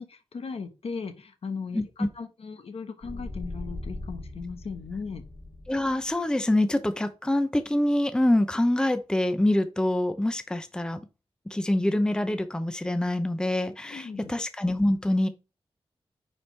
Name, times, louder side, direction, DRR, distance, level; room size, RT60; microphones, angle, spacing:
voice 1, 0.0-5.2 13.8-14.3, left 5 dB, 70° left, 1.1 m, -37 dB
voice 2, 1.7-2.1 5.7-11.0 11.5-15.3, left 1 dB, 10° left, 0.6 m, -25 dB
sound 1, 3.0-6.1, left 2 dB, 50° left, 3.0 m, -40 dB
9.7 x 4.3 x 3.3 m
wide cardioid pair, 120°, 10 cm